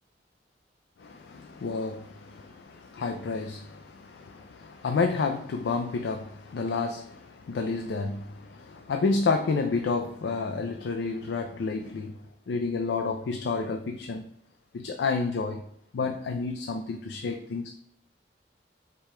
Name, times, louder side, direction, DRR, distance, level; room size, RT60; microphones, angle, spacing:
voice 1, 1.0-12.2 12.5-14.2 14.7-15.6 15.9-17.7, left 4 dB, 80° left, 0.4 m, -30 dB
4.9 x 2.3 x 4.3 m
head